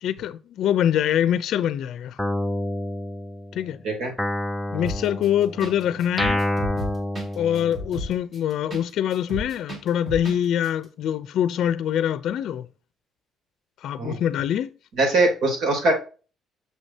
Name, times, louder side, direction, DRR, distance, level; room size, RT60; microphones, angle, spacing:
voice 1, 0.0-2.2 3.5-3.8 4.7-6.4 7.4-12.7 13.8-14.7, left 10 dB, 60° left, 0.6 m, -24 dB
Guitar, 2.2-3.7 4.2-8.1, left 1 dB, 5° left, 0.4 m, -28 dB
sound 1, 4.8-5.3 5.6-5.7 6.0-8.8 9.1-10.4 10.6-10.7, equal, 25° right, 2.2 m, -33 dB
voice 2, 15.0-15.9, right 2 dB, 60° right, 3.4 m, -21 dB
6.8 x 6.5 x 2.8 m
cardioid pair, 160°, 0 cm